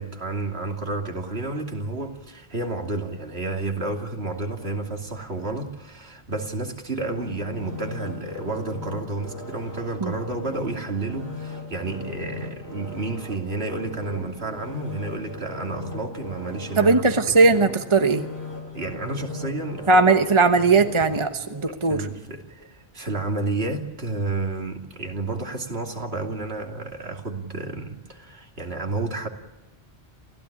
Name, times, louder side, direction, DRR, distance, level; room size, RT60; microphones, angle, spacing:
voice 1, 0.0-17.4 18.7-20.2 21.7-29.3, right 3 dB, 70° right, 3 dB, 3.0 m, -31 dB
sound 1, 7.1-22.1 22.6-22.7, left 2 dB, 75° left, 6.1 m, -38 dB
voice 2, 16.8-18.2 19.9-22.1, right 3 dB, 30° right, 7 dB, 1.2 m, -18 dB
28.0 x 16.0 x 9.9 m, 1.1 s
omnidirectional pair, 1.1 m